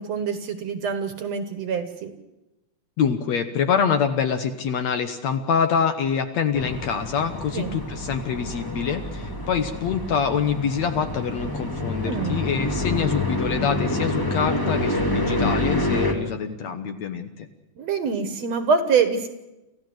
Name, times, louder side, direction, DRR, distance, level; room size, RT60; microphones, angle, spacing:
voice 1, 0.0-2.1 7.5-7.8 12.0-12.5 17.8-19.3, right 5 dB, 60° right, 9 dB, 2.3 m, -25 dB
voice 2, 3.0-17.5, left 7 dB, 60° left, 8 dB, 2.1 m, -25 dB
sound 1, 6.5-16.1, left 1 dB, 10° left, 1.5 m, -27 dB
28.0 x 15.0 x 7.9 m, 0.97 s
omnidirectional pair, 3.9 m